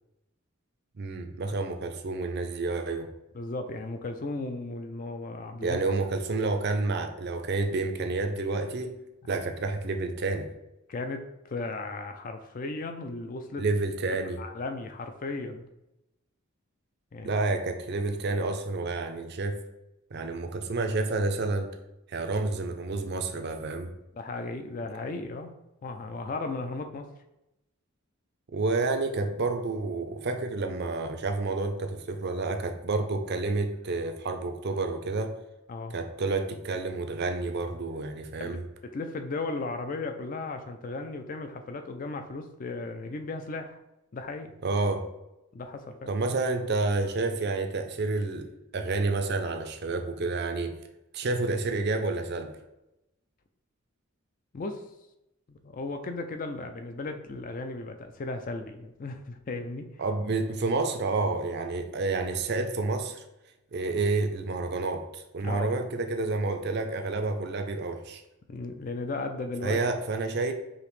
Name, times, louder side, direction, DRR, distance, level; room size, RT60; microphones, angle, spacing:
voice 1, 1.0-3.1 5.6-9.0 9.3-10.5 13.6-14.4 17.2-19.6 20.1-21.8 22.1-23.9 28.5-35.4 35.9-38.6 44.6-45.1 46.1-50.7 51.1-52.5 60.0-63.2 63.7-68.2 69.6-70.5, right 3 dB, 50° right, 6 dB, 0.5 m, -29 dB
voice 2, 3.3-5.8 10.9-13.6 14.4-15.7 17.1-17.4 24.1-25.5 25.8-27.1 35.7-35.9 38.4-38.6 38.9-43.8 44.1-44.5 45.5-46.1 54.5-54.8 55.5-59.9 65.4-65.7 68.5-69.8, left 3 dB, 40° left, 6 dB, 0.4 m, -36 dB
5.0 x 2.8 x 3.1 m, 0.91 s
head